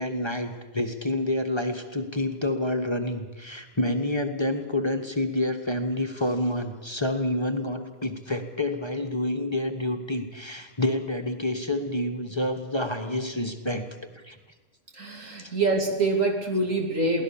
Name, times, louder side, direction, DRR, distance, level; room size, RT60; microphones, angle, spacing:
voice 1, 0.0-13.8 14.1-14.4 15.4-15.5, left 1 dB, 20° left, 4 dB, 1.4 m, -28 dB
voice 2, 14.9-17.2, right 2 dB, 85° right, 2 dB, 3.4 m, -25 dB
23.0 x 17.0 x 7.2 m, 1.2 s
omnidirectional pair, 1.3 m